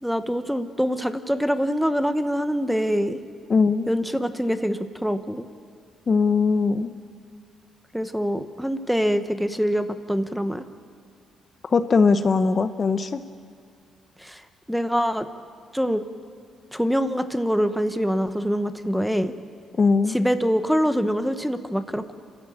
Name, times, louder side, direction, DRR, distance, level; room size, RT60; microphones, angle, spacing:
voice 1, 0.0-3.2 3.9-5.4 7.9-10.6 14.2-14.4 14.7-15.3 15.7-16.0 16.7-19.3 20.1-22.1, equal, ahead, 10 dB, 1.1 m, -24 dB
voice 2, 3.5-3.9 6.1-6.9 11.7-13.2 19.8-20.2, left 4 dB, 40° left, 10 dB, 0.8 m, -20 dB
27.5 x 13.5 x 8.8 m, 2.3 s
cardioid pair, 90°, 0 cm